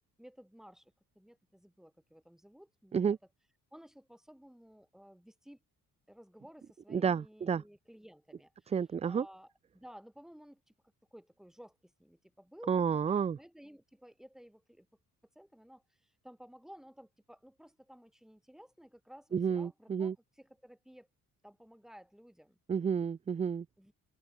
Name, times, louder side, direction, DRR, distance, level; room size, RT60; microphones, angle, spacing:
voice 1, 0.0-3.2 3.7-5.6 6.1-8.8 9.0-10.7 11.1-12.7 13.1-14.9 15.4-21.1 21.4-22.6 23.8-23.9, equal, ahead, 5.6 m, -55 dB
voice 2, 6.9-7.6 8.7-9.2 12.7-13.4 19.3-20.1 22.7-23.7, right 7 dB, 20° right, 0.3 m, -30 dB
cardioid pair, 165°, 34 cm